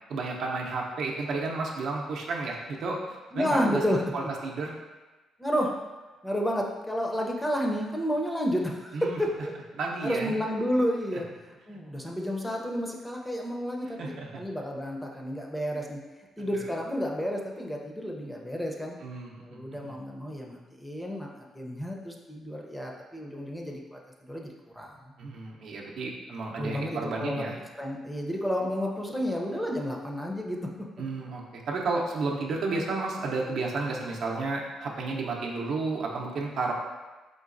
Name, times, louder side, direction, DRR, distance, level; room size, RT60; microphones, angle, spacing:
voice 1, 0.1-3.8 4.1-4.8 8.9-9.2 9.8-10.4 14.0-14.4 16.4-16.5 19.0-19.9 25.2-27.6 31.0-36.7, right 3 dB, 70° right, -1 dB, 0.6 m, -32 dB
voice 2, 3.3-4.0 5.4-5.8 6.2-9.3 10.0-11.3 11.7-16.0 16.4-19.0 19.4-25.1 26.6-27.4 27.8-30.6, equal, 5° left, 0 dB, 0.6 m, -31 dB
3.8 x 3.8 x 2.5 m, 1.2 s
cardioid pair, 90°, 0 cm